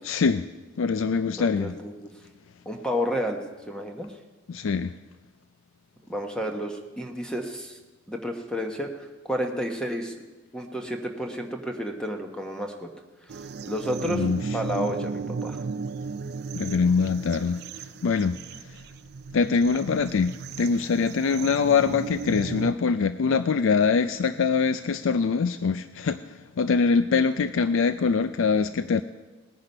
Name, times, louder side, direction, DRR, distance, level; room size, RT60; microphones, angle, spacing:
voice 1, 0.0-0.5 0.8-1.7 4.5-4.9 14.1-14.4 16.5-18.4 19.3-29.0, left 5 dB, 70° left, 12 dB, 0.4 m, -24 dB
voice 2, 1.4-2.1 2.6-4.1 6.1-7.8 8.1-10.1 10.5-12.9 13.7-14.3 14.5-15.6, equal, 5° left, 3 dB, 1.1 m, -31 dB
sound 1, 13.3-22.7, right 4 dB, 50° right, 0.4 m, -35 dB
19.0 x 9.9 x 5.4 m, 1.2 s
head